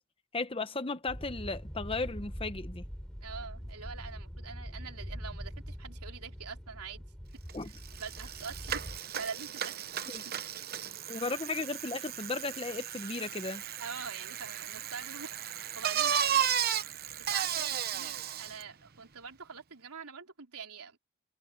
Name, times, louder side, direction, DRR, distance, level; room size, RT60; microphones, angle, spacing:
voice 1, 0.3-2.9 7.5-7.7 10.1-10.2 11.1-13.6, left 3 dB, 25° left, 0.9 m, -35 dB
sound 1, 1.1-9.0, equal, 5° left, 3.4 m, -43 dB
voice 2, 3.2-7.0 8.0-9.9 13.8-16.6 17.2-21.0, right 6 dB, 90° right, 3.8 m, -44 dB
Bicycle, 7.5-7.6 7.8-18.6, right 9 dB, 45° right, 0.9 m, -34 dB
head